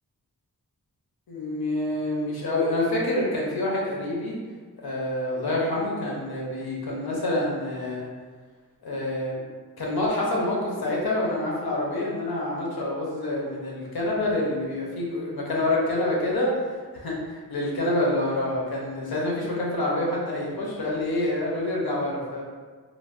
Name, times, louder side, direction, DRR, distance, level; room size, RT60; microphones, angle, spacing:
voice 1, 1.3-4.3 4.8-8.1 8.8-9.5 9.8-16.5 16.9-22.4, left 1 dB, 85° left, -3 dB, 0.7 m, -27 dB
3.2 x 2.0 x 2.4 m, 1.5 s
wide cardioid pair, 85°, 36 cm